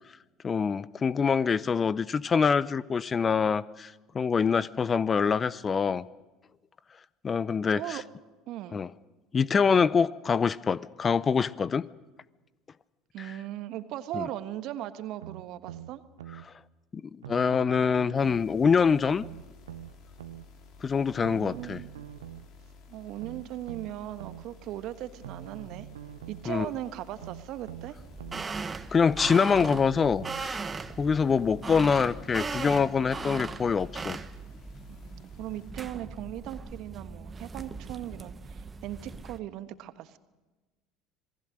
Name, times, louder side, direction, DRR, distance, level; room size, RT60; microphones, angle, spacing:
voice 1, 0.4-6.1 7.2-8.0 8.7-8.9 9.3-11.9 13.2-13.3 14.2-14.3 16.9-17.0 17.3-19.2 20.8-21.8 26.5-26.7 28.9-30.6 31.0-34.2, left 6 dB, 30° left, 20 dB, 0.6 m, -25 dB
voice 2, 8.5-8.8 13.1-16.0 21.3-21.9 22.9-25.9 26.3-28.0 31.3-31.7 34.9-40.2, right 13 dB, 55° right, 12 dB, 1.3 m, -38 dB
sound 1, 15.2-16.5 17.2-18.5 19.2-20.5 21.2-22.5 23.2-24.5 25.2-26.5 27.2-28.5 29.2-30.5 31.2-31.3, right 11 dB, 75° right, 0.8 m, -44 dB
sound 2, 18.1-35.7, left 4 dB, 55° left, 2.9 m, -53 dB
creeking door clothes flapping, 28.0-39.4, right 4 dB, 25° right, 1.3 m, -39 dB
27.0 x 19.5 x 6.5 m, 1.2 s
figure-of-eight pair, 65°, 0 cm